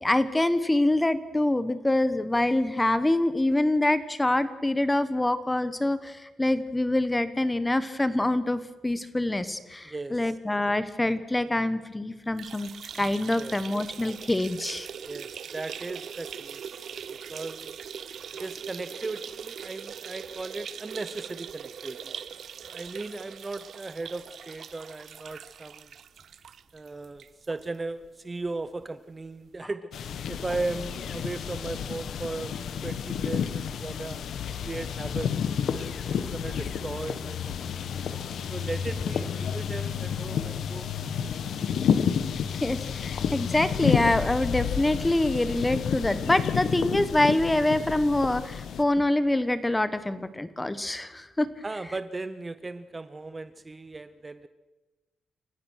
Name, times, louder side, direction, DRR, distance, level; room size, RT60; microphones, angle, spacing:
voice 1, 0.0-14.9 38.2-38.3 41.2-41.3 42.6-51.5, left 1 dB, 10° left, 13 dB, 1.1 m, -25 dB
voice 2, 9.9-10.3 13.4-13.6 15.0-16.6 17.1-17.7 18.4-22.1 22.6-25.9 26.7-32.5 32.8-34.2 34.6-35.3 35.7-37.9 38.5-40.9 51.6-54.5, right 3 dB, 20° right, 12 dB, 0.7 m, -37 dB
sound 1, 12.3-27.7 28.0-28.1 28.4-28.5 29.5-29.6, right 8 dB, 55° right, 0.7 m, -41 dB
sound 2, 29.9-48.8, left 7 dB, 70° left, 1.3 m, -30 dB
29.0 x 15.0 x 6.4 m, 1.1 s
cardioid pair, 145°, 0 cm